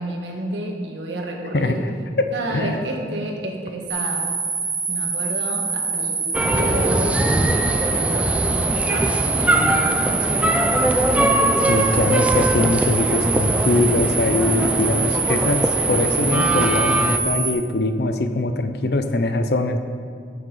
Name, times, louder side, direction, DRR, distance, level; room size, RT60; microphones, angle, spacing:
voice 1, 0.0-1.8 2.3-4.3 4.9-6.2 6.4-7.3 7.6-10.8, right 1 dB, 80° right, 1 dB, 1.5 m, -30 dB
voice 2, 2.2-2.9 11.7-19.8, left 2 dB, 60° left, 8 dB, 0.7 m, -22 dB
sound 1, 3.9-17.5, right 5 dB, 50° right, 2.2 m, -25 dB
sound 2, 6.3-17.2, right 1 dB, 5° right, 0.4 m, -21 dB
13.5 x 6.6 x 4.0 m, 2.1 s
head